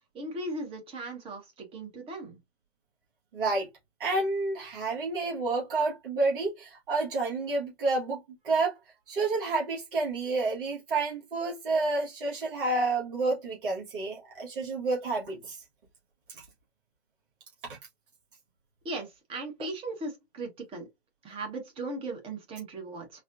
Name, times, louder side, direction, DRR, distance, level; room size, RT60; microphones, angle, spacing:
voice 1, 0.1-2.4 18.8-20.9 21.2-23.2, right 2 dB, 15° right, 1.1 m, -38 dB
voice 2, 3.3-3.7 4.0-8.8 9.1-15.6 16.3-16.4 17.7-17.8, right 3 dB, 50° right, 1.6 m, -29 dB
4.2 x 2.4 x 2.5 m
figure-of-eight pair, 125°, 33 cm